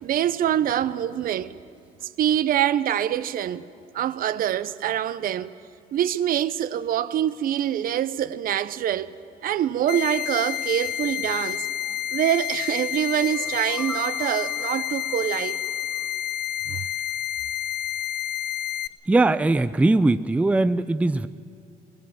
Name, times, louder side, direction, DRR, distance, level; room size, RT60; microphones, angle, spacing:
voice 1, 0.0-1.6 2.2-3.6 3.9-5.5 5.9-9.1 9.4-11.7 12.1-15.6 16.7-16.8, right 10 dB, 60° right, 0.7 m, -25 dB
sound 1, 9.9-18.9, left 11 dB, 60° left, 0.6 m, -29 dB
sound 2, 13.1-16.2, equal, 10° left, 1.3 m, -43 dB
voice 2, 19.1-21.3, right 2 dB, 10° right, 0.4 m, -20 dB
20.0 x 20.0 x 7.5 m
cardioid pair, 110°, 17 cm